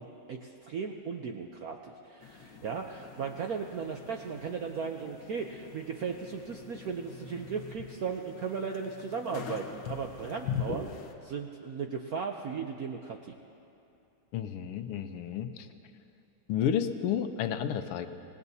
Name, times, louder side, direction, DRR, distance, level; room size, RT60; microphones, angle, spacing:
voice 1, 0.0-10.9 11.2-13.4, right 5 dB, 70° right, 3 dB, 0.8 m, -36 dB
sound 1, 2.2-11.1, left 7 dB, 70° left, 1.7 m, -42 dB
voice 2, 14.3-15.7 16.5-18.1, left 9 dB, 90° left, 9 dB, 1.7 m, -31 dB
26.5 x 19.0 x 2.8 m, 2.7 s
omnidirectional pair, 2.4 m